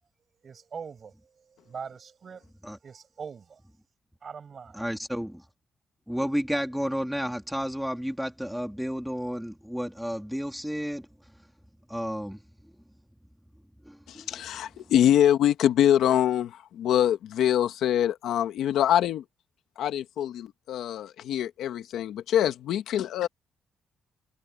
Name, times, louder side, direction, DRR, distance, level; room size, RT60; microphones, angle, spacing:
voice 1, 0.4-3.6 4.2-4.8, right 6 dB, 35° right, 6.6 m, -42 dB
voice 2, 4.7-5.3 6.1-11.1 11.9-12.4 13.8-14.4 14.8-14.9, equal, ahead, 3.5 m, -31 dB
voice 3, 14.1-19.2 19.8-23.3, left 11 dB, 85° left, 1.6 m, -24 dB
cardioid pair, 155°, 0 cm